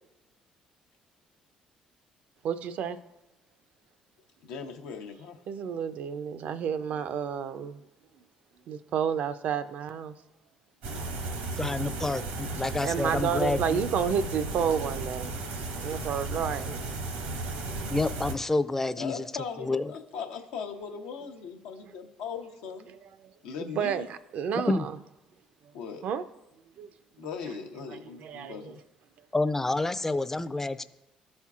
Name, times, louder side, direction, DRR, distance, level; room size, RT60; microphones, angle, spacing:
voice 1, 2.4-3.0 5.5-7.8 8.7-10.1 12.8-16.8 22.9-24.9 26.0-26.3 26.8-26.9 27.9-28.8, right 7 dB, 65° right, 12 dB, 0.4 m, -31 dB
voice 2, 4.4-5.4 19.0-22.9 23.4-24.0 25.7-26.0 27.2-28.8, left 6 dB, 85° left, 3 dB, 0.7 m, -39 dB
sound 1, 10.8-18.3, right 2 dB, 80° right, 0.9 m, -35 dB
voice 3, 11.5-13.8 17.9-19.3 19.6-19.9 24.7-24.9 29.3-30.8, left 2 dB, 15° left, 12 dB, 0.4 m, -28 dB
12.5 x 4.3 x 2.4 m, 0.99 s
supercardioid pair, 70°, 3 cm